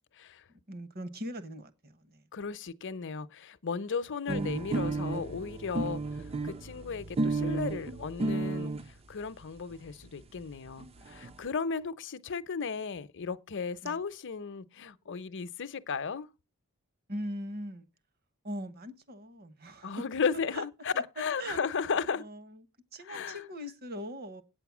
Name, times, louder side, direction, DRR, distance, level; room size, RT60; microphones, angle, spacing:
voice 1, 0.7-2.2 13.8-14.0 17.1-17.9 18.4-19.9 20.5-20.6 20.9-21.6 22.2-22.6 22.9-24.4, equal, 45° right, 1.2 m, -40 dB
voice 2, 2.3-6.0 6.4-8.7 9.1-16.3 19.8-22.2 23.0-23.4, left 5 dB, 55° left, 0.7 m, -35 dB
sound 1, 4.3-8.9 9.7-9.8 10.0-10.1 10.4-10.5 10.7-11.3, right 3 dB, 25° right, 0.5 m, -33 dB
8.9 x 7.9 x 6.1 m
head